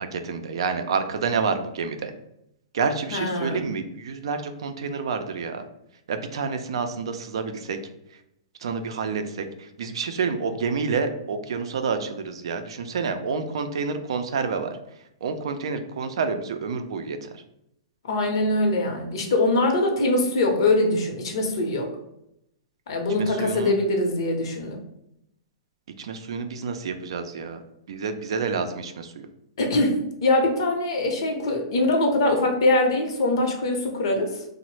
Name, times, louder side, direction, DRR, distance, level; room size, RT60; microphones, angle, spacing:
voice 1, 0.1-2.1 2.7-5.6 6.1-7.8 8.6-14.8 15.2-17.3 23.2-23.7 26.0-27.6 27.9-29.3, right 5 dB, 75° right, 8 dB, 0.4 m, -28 dB
voice 2, 3.1-3.7 18.0-21.9 22.9-24.8 29.6-34.3, left 2 dB, 70° left, 3 dB, 0.7 m, -23 dB
2.9 x 2.0 x 3.1 m, 0.80 s
hypercardioid pair, 130°, 3 cm